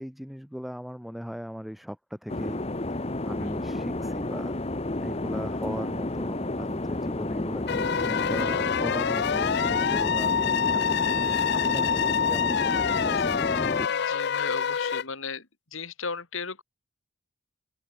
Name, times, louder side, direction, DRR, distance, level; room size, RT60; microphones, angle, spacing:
voice 1, 0.0-2.6 3.2-4.6 5.0-13.4, equal, ahead, 0.5 m, -38 dB
sound 1, 2.3-13.9, left 2 dB, 30° left, 1.0 m, -31 dB
sound 2, 7.7-15.0, left 7 dB, 55° left, 0.5 m, -26 dB
voice 2, 13.9-16.6, left 5 dB, 70° left, 2.6 m, -36 dB
open air
head